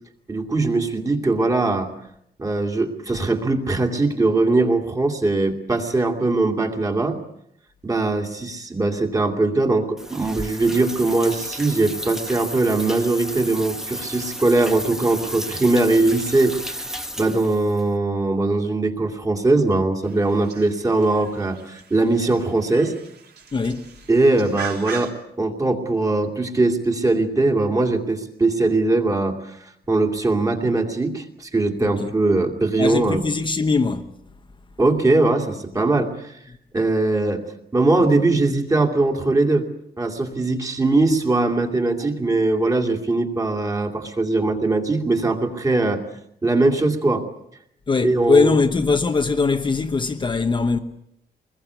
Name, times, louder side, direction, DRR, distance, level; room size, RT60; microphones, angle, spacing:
voice 1, 0.3-1.9 2.4-7.2 7.8-22.9 24.1-33.2 34.8-36.3 36.7-37.5 37.7-39.6 40.0-46.0 46.4-47.2 48.0-48.6, right 2 dB, 20° right, 2.5 m, -21 dB
sound 1, 10.0-17.8, equal, 5° right, 1.2 m, -33 dB
sound 2, 20.0-25.1, right 6 dB, 70° right, 3.6 m, -39 dB
voice 2, 23.5-23.8 31.8-32.1 32.8-34.1 47.9-50.8, left 4 dB, 30° left, 1.0 m, -21 dB
24.5 x 21.0 x 8.2 m
wide cardioid pair, 175°, 17 cm